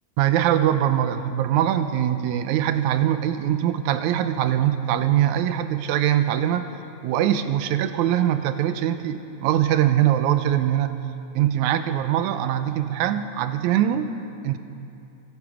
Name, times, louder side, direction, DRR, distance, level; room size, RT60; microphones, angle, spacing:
voice 1, 0.2-6.7 7.0-11.0 11.4-14.1 14.4-14.6, right 11 dB, 85° right, 10 dB, 2.1 m, -22 dB
25.0 x 11.0 x 5.0 m, 2.7 s
omnidirectional pair, 3.4 m